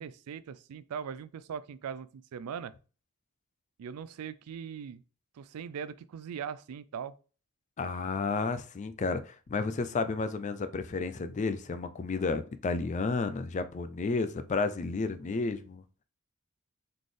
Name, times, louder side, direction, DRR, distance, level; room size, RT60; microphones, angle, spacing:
voice 1, 0.0-2.7 3.8-5.0 5.4-7.2, right 7 dB, 85° right, 0.4 m, -40 dB
voice 2, 7.8-15.8, left 4 dB, 35° left, 0.4 m, -32 dB
3.9 x 3.8 x 3.2 m
head